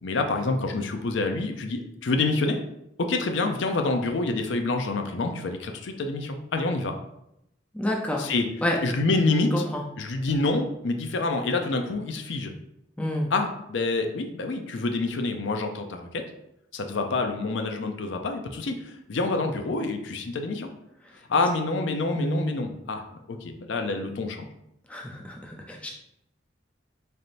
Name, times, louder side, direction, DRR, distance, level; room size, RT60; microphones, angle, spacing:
voice 1, 0.0-2.6 3.0-7.0 8.2-8.5 8.8-9.6 10.0-12.5 13.3-16.2 16.7-20.7 21.3-24.4, left 3 dB, 70° left, 5 dB, 0.5 m, -27 dB
voice 2, 7.7-8.3 8.6-8.8 9.5-9.8 13.0-13.3 22.2-22.4 24.9-25.9, left 1 dB, 5° left, -1 dB, 0.4 m, -29 dB
4.0 x 3.4 x 2.5 m, 0.80 s
head